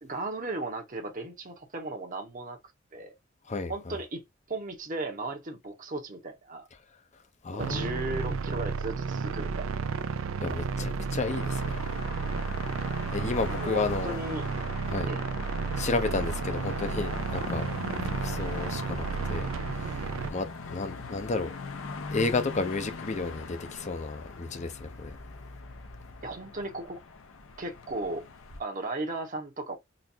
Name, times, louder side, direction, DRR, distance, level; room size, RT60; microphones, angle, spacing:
voice 1, 0.0-2.6 2.9-3.1 3.7-4.2 4.5-6.7 7.5-9.9 10.4-10.5 10.8-10.9 13.5-14.5 15.1-15.2 26.2-27.0 27.6-28.2 28.6-29.8, right 2 dB, 40° right, 1.0 m, -36 dB
voice 2, 3.5-4.0 7.4-8.4 10.4-11.8 13.1-14.2 14.9-15.1 15.8-17.7 18.2-19.5 19.8-20.0 20.3-21.5 22.1-25.2, left 3 dB, 35° left, 0.6 m, -32 dB
sound 1, 7.6-20.3, right 5 dB, 75° right, 0.5 m, -32 dB
sound 2, 11.2-28.6, left 4 dB, 75° left, 0.8 m, -41 dB
4.0 x 2.5 x 2.7 m
head